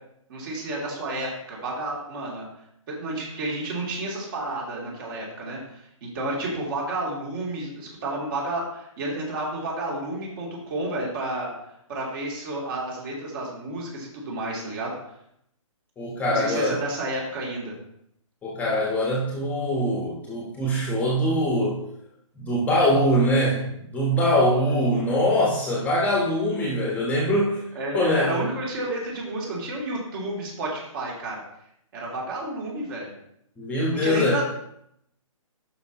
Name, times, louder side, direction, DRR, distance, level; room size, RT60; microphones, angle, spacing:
voice 1, 0.3-2.5 2.9-11.5 11.9-14.9 16.3-17.7 27.7-31.4 31.9-33.1 33.9-34.5, right 2 dB, 40° right, -3 dB, 3.3 m, -31 dB
voice 2, 16.0-16.8 18.4-21.8 22.4-27.6 27.9-28.4 33.6-34.4, equal, 10° left, -4 dB, 1.4 m, -23 dB
12.0 x 5.5 x 3.1 m, 0.74 s
hypercardioid pair, 145°, 18 cm